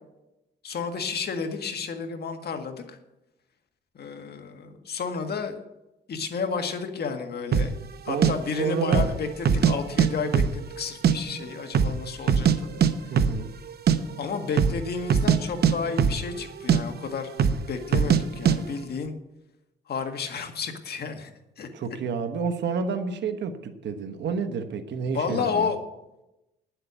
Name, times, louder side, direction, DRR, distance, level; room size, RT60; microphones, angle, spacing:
voice 1, 0.6-3.0 3.9-5.6 6.1-7.7 8.0-13.2 14.2-17.3 17.7-19.1 19.9-21.3 21.6-21.7 25.1-25.8, left 5 dB, 60° left, 5 dB, 1.8 m, -31 dB
sound 1, 7.5-7.7 8.2-8.3 8.8-9.2 9.4-10.1 10.3-11.1 11.4-11.5 11.7-12.6 12.8-12.9 13.2-13.4 13.7-14.0 14.5-14.8 15.1-15.4 15.6-16.4 16.7-16.8 17.4-17.6 17.9-18.2 18.5-18.6, right 7 dB, 60° right, 0.9 m, -20 dB
voice 2, 8.1-9.1 13.1-13.5 21.7-25.7, right 5 dB, 80° right, 8 dB, 1.2 m, -30 dB
10.5 x 7.8 x 8.1 m, 0.93 s
cardioid pair, 90°, 18 cm